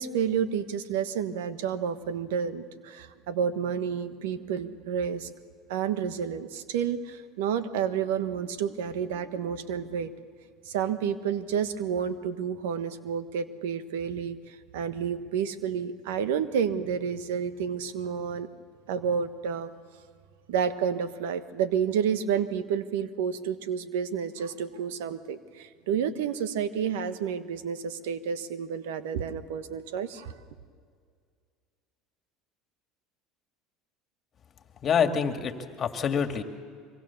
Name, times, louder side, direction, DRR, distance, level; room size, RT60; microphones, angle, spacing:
voice 1, 0.0-5.3 5.7-10.1 10.6-18.5 18.9-19.7 20.5-30.3, right 7 dB, 90° right, 11 dB, 1.3 m, -30 dB
voice 2, 34.8-36.4, left 7 dB, 35° left, 6 dB, 2.1 m, -26 dB
24.5 x 23.5 x 7.1 m, 2.1 s
supercardioid pair, 110°, 0 cm